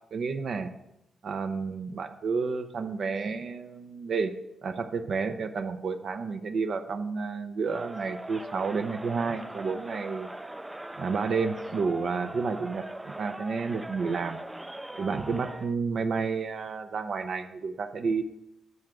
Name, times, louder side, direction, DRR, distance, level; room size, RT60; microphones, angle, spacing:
voice 1, 0.1-0.7 1.2-4.3 4.6-10.3 11.0-14.4 15.0-18.2, right 5 dB, 60° right, 8 dB, 0.7 m, -30 dB
Crowd, 7.6-15.8, right 1 dB, 10° right, 0.4 m, -41 dB
12.5 x 7.9 x 3.7 m, 0.87 s
cardioid pair, 110°, 0 cm